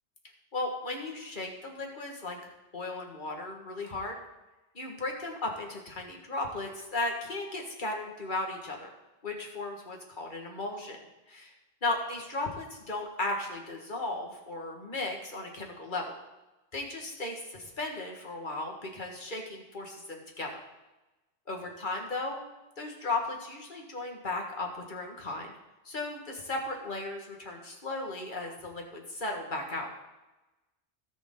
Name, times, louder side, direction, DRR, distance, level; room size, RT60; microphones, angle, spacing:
voice 1, 0.5-2.4 2.7-4.2 4.7-8.9 9.2-11.0 11.3-11.5 11.8-16.2 16.7-20.5 21.5-22.4 22.8-25.5 25.9-29.9, left 2 dB, 45° left, 1 dB, 2.0 m, -36 dB
18.0 x 6.7 x 3.9 m, 1.0 s
omnidirectional pair, 1.1 m